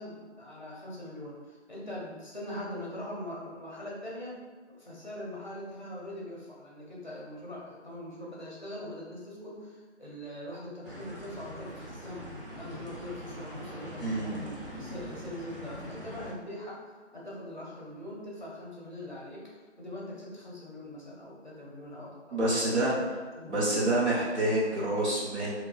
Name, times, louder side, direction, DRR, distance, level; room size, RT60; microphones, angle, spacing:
voice 1, 0.0-4.4 4.7-19.5 19.8-22.9 23.4-23.8, left 1 dB, 40° left, -5 dB, 0.6 m, -42 dB
sound 1, 10.8-16.3, equal, 50° right, 0.6 m, -43 dB
voice 2, 14.0-14.3 22.3-22.9 23.5-25.5, right 1 dB, 65° right, -6 dB, 1.0 m, -27 dB
2.5 x 2.2 x 2.4 m, 1.4 s
figure-of-eight pair, 165°, 36 cm